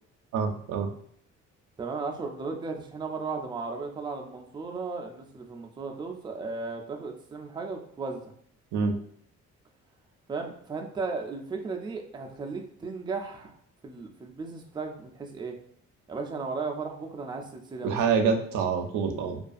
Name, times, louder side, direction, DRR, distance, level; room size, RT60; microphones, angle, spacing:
voice 1, 0.3-0.9 8.7-8.9 17.8-19.4, right 5 dB, 80° right, 5 dB, 0.5 m, -26 dB
voice 2, 1.8-8.3 10.3-13.6 13.8-15.6 16.1-18.0, right 4 dB, 15° right, 2 dB, 0.3 m, -35 dB
2.4 x 2.3 x 2.5 m, 0.65 s
cardioid pair, 90°, 30 cm